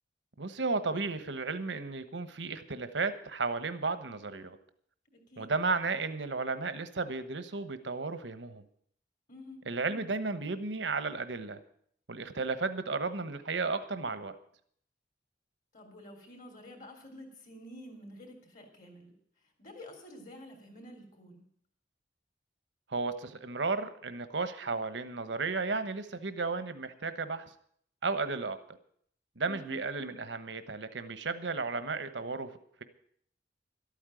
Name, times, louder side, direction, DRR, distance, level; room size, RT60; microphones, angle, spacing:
voice 1, 0.4-4.6 5.4-8.6 9.7-11.6 12.1-14.3 22.9-27.4 28.0-28.6 29.4-32.5, right 4 dB, 90° right, 11 dB, 1.2 m, -34 dB
voice 2, 5.1-5.5 9.3-9.6 15.7-19.1 19.6-21.4 29.4-29.8, left 1 dB, 45° left, 3 dB, 3.4 m, -49 dB
13.0 x 8.8 x 9.1 m, 0.63 s
head